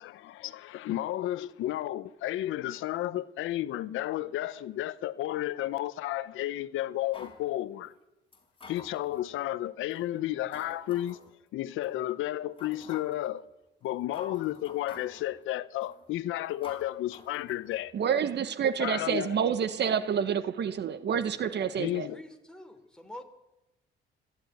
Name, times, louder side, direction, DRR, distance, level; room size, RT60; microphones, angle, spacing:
voice 1, 0.0-7.9 8.7-11.2 11.5-13.5 13.8-17.9 18.8-19.4 21.8-22.2, left 14 dB, 90° left, 0.9 m, -32 dB
sound 1, 7.1-7.4 8.3-9.3 9.9-10.0 10.5-11.3 11.8-11.9 12.6-13.3 13.8-13.9 14.1-15.3 15.8-16.1 16.6-17.9 18.1-18.2, left 3 dB, 25° left, 4.8 m, -49 dB
voice 2, 17.9-22.1, right 7 dB, 60° right, 1.2 m, -28 dB
voice 3, 21.4-23.2, left 1 dB, 5° left, 3.4 m, -48 dB
24.5 x 12.5 x 9.5 m
cardioid pair, 90°, 20 cm